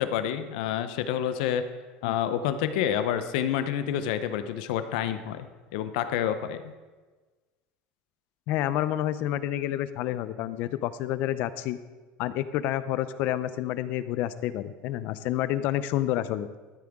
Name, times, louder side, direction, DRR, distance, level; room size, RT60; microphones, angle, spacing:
voice 1, 0.0-1.7 2.0-6.7, left 10 dB, 70° left, 10 dB, 0.8 m, -28 dB
voice 2, 8.5-11.8 12.2-16.5, left 13 dB, 45° left, 14 dB, 0.5 m, -29 dB
13.5 x 8.7 x 3.6 m, 1.3 s
cardioid pair, 180°, 4 cm